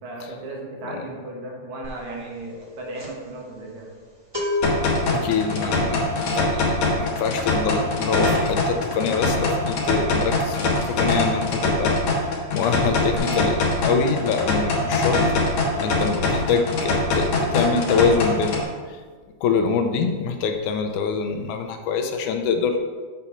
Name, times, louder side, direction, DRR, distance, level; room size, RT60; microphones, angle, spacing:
voice 1, 0.0-3.9, right 2 dB, 70° right, -1 dB, 2.7 m, -35 dB
sound 1, 1.8-2.1 2.4-10.9 11.2-11.4 11.7-12.5 12.8-13.2, left 2 dB, 20° right, 0.6 m, -33 dB
sound 2, 4.6-18.6, left 2 dB, 65° left, 2.4 m, -23 dB
voice 2, 5.1-12.0 12.5-15.2 15.8-18.7 19.4-22.8, left 5 dB, 85° left, 5 dB, 2.2 m, -25 dB
8.0 x 4.2 x 5.6 m, 1.5 s
omnidirectional pair, 3.5 m